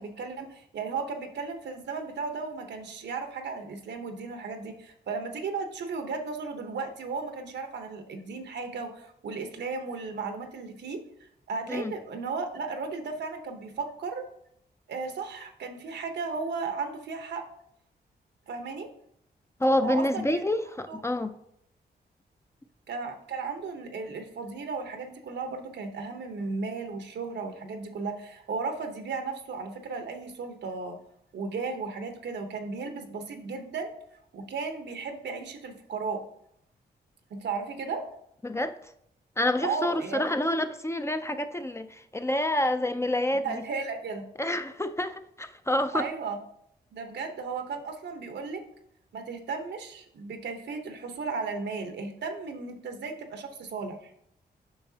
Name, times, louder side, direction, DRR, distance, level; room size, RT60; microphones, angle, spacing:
voice 1, 0.0-11.0 11.5-14.2 14.9-17.4 18.5-18.9 19.8-20.2 20.9-21.0 22.9-31.0 31.3-33.9 34.3-36.2 37.3-38.0 39.6-40.2 43.4-44.2 45.9-46.4 46.9-48.6 49.1-54.1, right 4 dB, 90° right, 6 dB, 1.0 m, -35 dB
voice 2, 19.6-21.3 38.4-38.7 39.4-43.6 44.4-46.1, left 1 dB, 15° left, 9 dB, 0.4 m, -28 dB
8.7 x 5.7 x 2.8 m, 0.73 s
cardioid pair, 90°, 17 cm